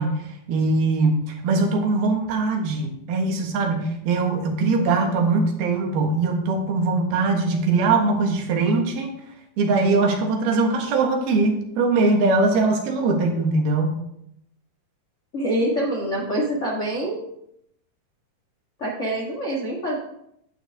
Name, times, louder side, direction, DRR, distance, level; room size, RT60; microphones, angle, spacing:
voice 1, 0.0-9.1 9.6-14.0, right 3 dB, 80° right, 2 dB, 3.4 m, -21 dB
voice 2, 15.3-17.2 18.8-20.0, right 1 dB, 60° left, -2 dB, 0.7 m, -25 dB
11.0 x 8.9 x 3.5 m, 0.76 s
omnidirectional pair, 4.3 m